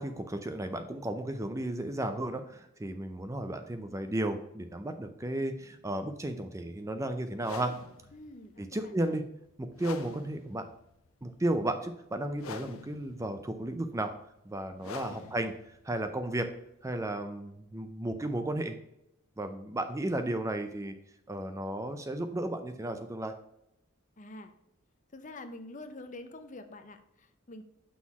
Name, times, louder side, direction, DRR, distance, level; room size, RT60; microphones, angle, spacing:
voice 1, 0.0-7.7 8.6-9.3 9.6-10.7 11.2-14.1 14.5-15.5 15.8-16.5 16.8-18.8 19.4-20.9 21.3-23.3, right 1 dB, 15° right, 8 dB, 0.5 m, -34 dB
sound 1, 7.4-17.2, left 5 dB, 85° left, 0.6 m, -47 dB
voice 2, 8.1-9.2 15.1-15.5 24.2-24.5 25.1-27.6, left 2 dB, 35° left, 8 dB, 0.6 m, -47 dB
6.1 x 3.8 x 5.9 m, 0.79 s
head